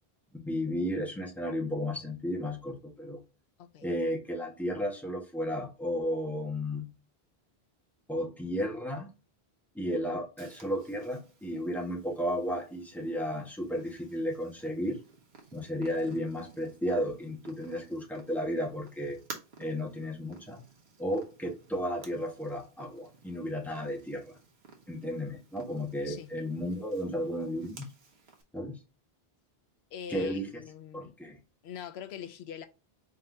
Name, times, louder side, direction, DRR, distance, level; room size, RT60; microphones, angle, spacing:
voice 1, 0.3-3.2 3.8-6.9 8.1-9.1 9.7-15.0 15.5-19.2 19.6-20.6 21.0-24.4 24.9-27.8 28.5-28.7 30.1-30.5 30.9-31.4, equal, ahead, 1.3 m, -33 dB
Purr, 10.4-28.4, right 4 dB, 85° right, 1.2 m, -54 dB
voice 2, 29.9-31.1 31.6-32.7, left 8 dB, 90° left, 0.8 m, -43 dB
4.3 x 3.7 x 2.6 m
omnidirectional pair, 1.0 m